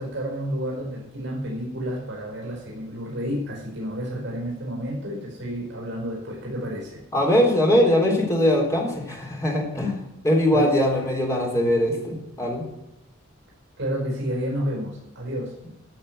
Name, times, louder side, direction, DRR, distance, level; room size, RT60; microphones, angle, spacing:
voice 1, 0.0-7.0 10.5-10.7 13.8-15.5, equal, 60° right, -2 dB, 5.1 m, -30 dB
voice 2, 7.1-12.6, left 1 dB, 15° left, -1 dB, 3.7 m, -21 dB
13.0 x 6.5 x 8.0 m, 0.88 s
head